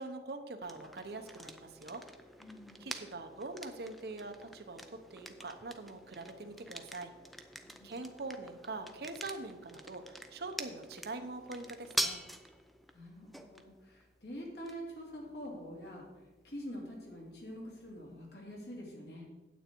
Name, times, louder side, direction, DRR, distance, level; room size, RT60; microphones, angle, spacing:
voice 1, 0.0-2.1 2.8-7.1 7.8-12.2, right 3 dB, 60° right, 7 dB, 0.8 m, -43 dB
sound 1, 0.6-18.4, equal, ahead, 0.4 m, -46 dB
voice 2, 2.4-2.9 7.6-7.9 12.9-19.3, equal, 70° left, -1 dB, 2.5 m, -46 dB
9.2 x 8.1 x 4.5 m, 1.2 s
head